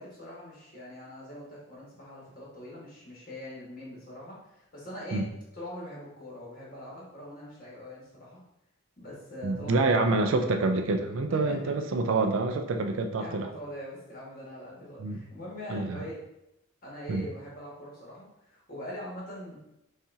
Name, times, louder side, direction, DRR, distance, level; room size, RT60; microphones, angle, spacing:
voice 1, 0.0-5.3 5.5-8.4 9.0-10.4 11.3-11.7 13.2-16.2 16.8-19.6, equal, 40° left, -6 dB, 1.5 m, -43 dB
voice 2, 9.4-13.5 15.0-15.2 15.7-16.0 17.1-17.2, right 3 dB, 65° right, 5 dB, 0.4 m, -27 dB
5.5 x 2.4 x 2.7 m, 0.85 s
head